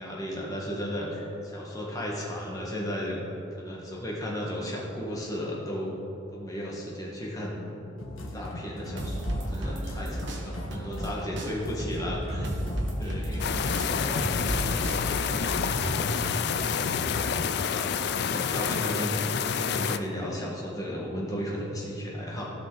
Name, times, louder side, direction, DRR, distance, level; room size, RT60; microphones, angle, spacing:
voice 1, 0.0-3.3 3.5-6.0 6.3-7.6 8.3-12.5 13.0-13.5 17.4-22.5, equal, 15° left, -4 dB, 1.5 m, -34 dB
sound 1, 8.0-17.4, equal, 90° left, 1.4 m, -38 dB
sound 2, 9.0-11.1 11.4-15.9, equal, 60° right, 1.2 m, -33 dB
voice 2, 9.5-10.2 10.8-10.9 13.0-16.3, right 1 dB, 20° right, -6 dB, 1.0 m, -44 dB
sound 3, 13.4-20.0, left 7 dB, 50° left, 0.3 m, -28 dB
16.0 x 5.6 x 3.9 m, 3.0 s
head